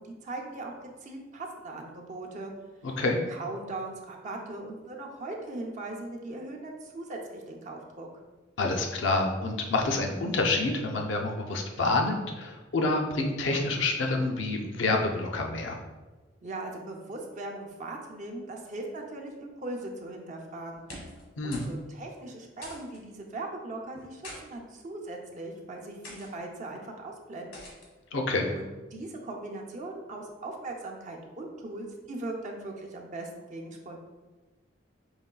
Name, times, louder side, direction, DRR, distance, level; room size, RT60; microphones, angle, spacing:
voice 1, 0.0-2.5 3.3-8.2 16.4-20.8 21.4-27.5 28.5-34.0, right 2 dB, 40° right, 0 dB, 0.5 m, -39 dB
voice 2, 2.8-3.2 8.6-15.8 21.4-21.6 28.1-28.5, left 2 dB, 65° left, 2 dB, 0.5 m, -28 dB
sound 1, 20.7-21.3 21.5-21.8 22.1-22.2 22.6-23.0 23.9-24.4 25.2-25.4 26.0-26.3 27.5-27.9, left 1 dB, 85° left, 1.3 m, -44 dB
5.6 x 3.0 x 2.3 m, 1.2 s
head